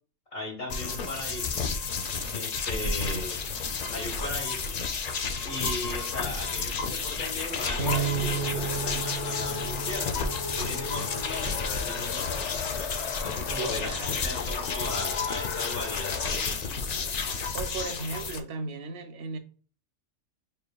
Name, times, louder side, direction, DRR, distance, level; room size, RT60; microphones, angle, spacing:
voice 1, 0.3-1.7 2.3-3.4 3.9-4.8 5.4-10.2 10.5-12.5 13.2-16.6, left 2 dB, 50° left, -1 dB, 1.6 m, -37 dB
sound 1, 0.7-18.4, left 5 dB, 90° left, 0.3 m, -31 dB
voice 2, 3.0-3.3 13.4-14.2 17.5-19.4, right 4 dB, 65° right, 5 dB, 0.7 m, -36 dB
Race car auto racing, 7.2-16.4, left 7 dB, 70° left, 0.8 m, -38 dB
Bass guitar, 7.8-12.2 12.9-14.0, right 9 dB, 90° right, 1.0 m, -35 dB
5.3 x 3.4 x 2.2 m, 0.40 s
omnidirectional pair, 1.3 m